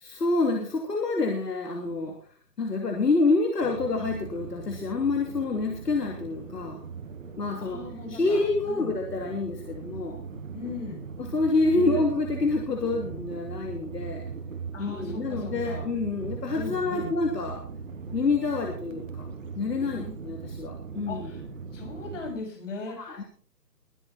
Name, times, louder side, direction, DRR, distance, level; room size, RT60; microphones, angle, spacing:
voice 1, 0.0-2.2 2.6-6.8 7.4-7.8 8.1-10.2 11.2-14.3 14.8-17.6 18.1-19.3 19.5-21.3 22.9-23.2, left 3 dB, 70° left, 2 dB, 3.1 m, -27 dB
sound 1, 3.6-22.3, right 5 dB, 50° right, 2.6 m, -39 dB
voice 2, 7.6-8.4 8.7-8.9 10.5-11.0 11.7-12.0 14.7-15.9 16.5-17.1 20.0-20.1 21.1-21.4 21.7-23.3, left 3 dB, 45° left, 1 dB, 7.2 m, -38 dB
22.5 x 8.7 x 4.4 m, 0.43 s
hypercardioid pair, 165°, 49 cm